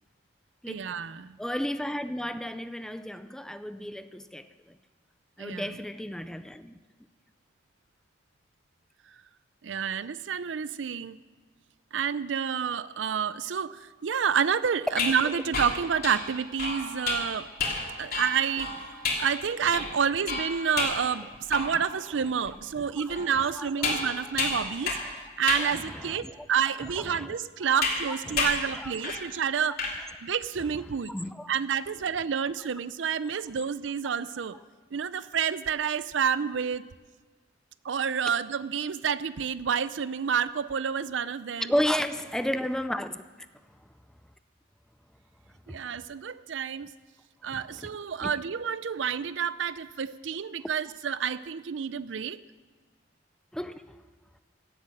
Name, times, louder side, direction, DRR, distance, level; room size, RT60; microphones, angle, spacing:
voice 1, 0.7-1.4 5.4-5.8 9.6-11.2 11.9-17.5 18.0-18.7 19.2-25.0 25.4-29.8 30.2-31.1 31.5-34.6 34.9-36.8 37.8-41.7 45.7-46.9 47.4-52.4, right 7 dB, 75° right, 0.5 m, -29 dB
voice 2, 1.4-4.8 5.4-6.8 22.8-23.7 24.6-24.7 25.6-26.5 27.0-27.4 28.1-29.2 31.1-31.5 41.6-43.2 45.7-45.8 47.5-47.6 48.2-48.3 53.5-54.0, equal, 5° left, 0.4 m, -33 dB
sound 1, 14.9-22.0 22.4-22.5 23.1-25.2 25.5-25.7 26.4-26.5 27.8-28.0 28.4-28.7 29.0-29.3 29.5-30.0, left 3 dB, 55° left, 2.9 m, -31 dB
16.0 x 8.1 x 7.6 m
head